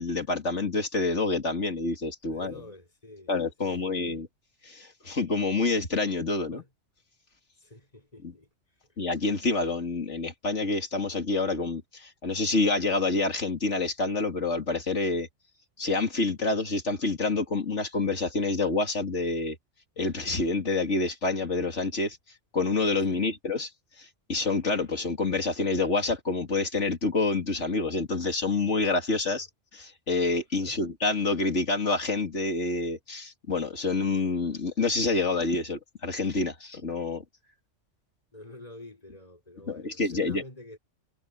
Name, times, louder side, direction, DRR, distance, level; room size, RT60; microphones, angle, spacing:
voice 1, 0.0-2.6 3.3-4.3 4.6-6.6 8.2-8.3 9.0-15.3 15.8-19.6 20.0-22.2 22.5-23.7 24.0-29.5 29.7-37.2 39.7-40.4, left 3 dB, 70° left, 3.2 m, -27 dB
voice 2, 2.3-3.3 3.6-4.1 6.5-6.7 7.6-8.5 23.1-23.3 29.3-29.4 30.6-30.8 38.3-40.8, left 1 dB, 30° left, 4.8 m, -48 dB
omnidirectional pair, 1.3 m